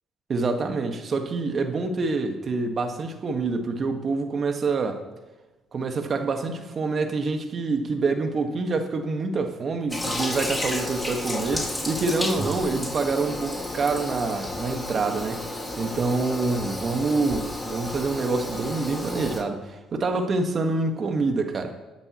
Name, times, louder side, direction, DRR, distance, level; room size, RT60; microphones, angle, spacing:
voice 1, 0.3-5.0 5.7-15.5 15.8-21.7, right 3 dB, 45° right, 5 dB, 1.8 m, -26 dB
Toilet flush, 9.9-19.4, left 1 dB, 10° left, 3.0 m, -32 dB
20.5 x 10.5 x 3.2 m, 1.1 s
hypercardioid pair, 55°, 0 cm